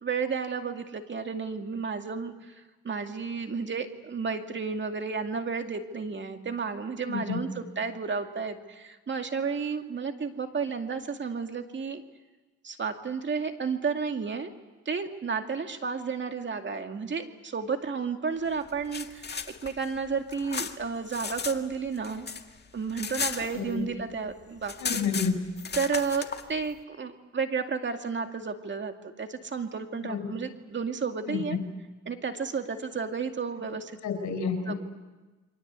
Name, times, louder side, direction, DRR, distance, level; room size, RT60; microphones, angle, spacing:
voice 1, 0.0-12.0 12.6-14.5 14.9-22.3 22.7-25.0 25.8-31.6 32.1-34.0 34.7-34.8, right 5 dB, 40° right, 6 dB, 2.3 m, -32 dB
voice 2, 7.1-7.4 23.5-23.9 24.8-25.4 30.0-30.3 31.3-31.6 34.0-34.8, left 6 dB, 75° left, 5 dB, 5.0 m, -30 dB
sound 1, 18.7-21.6 21.9-24.0 24.3-24.4 24.6-26.4, left 5 dB, 35° left, 1.8 m, -35 dB
29.0 x 24.0 x 8.3 m, 1.2 s
cardioid pair, 90°, 30 cm